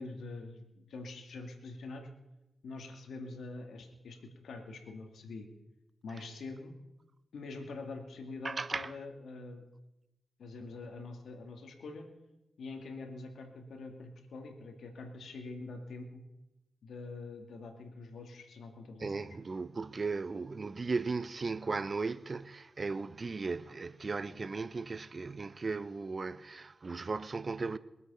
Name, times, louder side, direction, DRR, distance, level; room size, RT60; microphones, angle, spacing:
voice 1, 0.0-2.1 2.6-4.2 4.4-5.5 6.0-6.7 7.3-9.7 10.4-12.1 12.6-16.2 16.8-19.3, left 3 dB, 80° left, 2.2 m, -45 dB
voice 2, 8.4-8.9 19.0-27.8, right 4 dB, 50° right, 0.7 m, -36 dB
22.5 x 8.3 x 5.6 m
cardioid pair, 50°, 0 cm